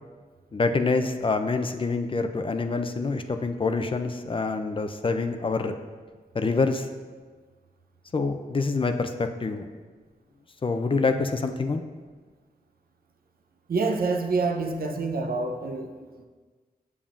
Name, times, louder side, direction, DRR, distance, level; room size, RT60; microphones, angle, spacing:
voice 1, 0.5-5.7 6.3-6.9 8.1-9.7 10.6-11.8, left 3 dB, 35° left, 7 dB, 0.4 m, -26 dB
voice 2, 13.7-16.3, right 3 dB, 70° right, 5 dB, 0.6 m, -27 dB
7.1 x 7.0 x 2.5 m, 1.4 s
wide cardioid pair, 95°, 16 cm